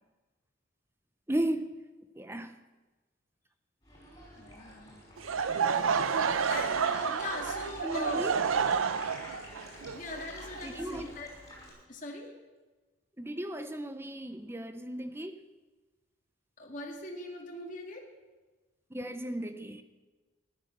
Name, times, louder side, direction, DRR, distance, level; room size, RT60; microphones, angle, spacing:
voice 1, 1.3-1.7 2.2-2.5 7.8-8.3 10.6-11.1 13.2-15.4 18.9-19.8, right 1 dB, 10° right, 9 dB, 0.7 m, -35 dB
sound 1, 3.8-11.7, left 1 dB, 15° left, 5.5 m, -48 dB
voice 2, 4.4-5.0 5.6-6.0 6.4-8.3 9.9-11.3 11.9-12.3 16.6-18.1, left 2 dB, 40° left, 1 dB, 2.1 m, -41 dB
Laughter / Crowd, 5.2-11.1, right 6 dB, 90° right, 0.6 m, -30 dB
14.0 x 11.5 x 6.6 m, 1.2 s
head